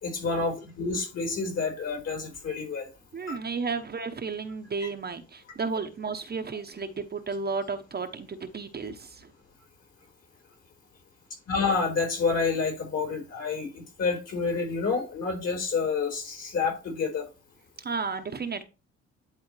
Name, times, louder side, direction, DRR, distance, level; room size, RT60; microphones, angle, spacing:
voice 1, 0.0-2.9 3.3-3.4 4.8-4.9 11.5-17.2, left 4 dB, 55° left, 4.0 m, -29 dB
voice 2, 3.1-9.3 17.8-18.6, right 4 dB, 35° right, 0.9 m, -33 dB
10.5 x 4.1 x 3.2 m
cardioid pair, 90°, 30 cm